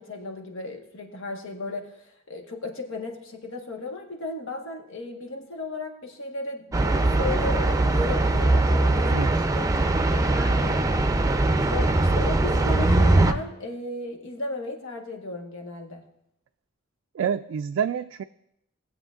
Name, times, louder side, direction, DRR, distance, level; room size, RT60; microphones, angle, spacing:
voice 1, 0.0-9.7 10.0-10.9 11.7-16.0, left 2 dB, 85° left, 2 dB, 1.4 m, -35 dB
sound 1, 6.7-13.3, right 2 dB, 15° right, 0.5 m, -21 dB
voice 2, 17.1-18.2, right 7 dB, 85° right, 7 dB, 0.3 m, -27 dB
18.5 x 7.9 x 2.5 m, 0.79 s
head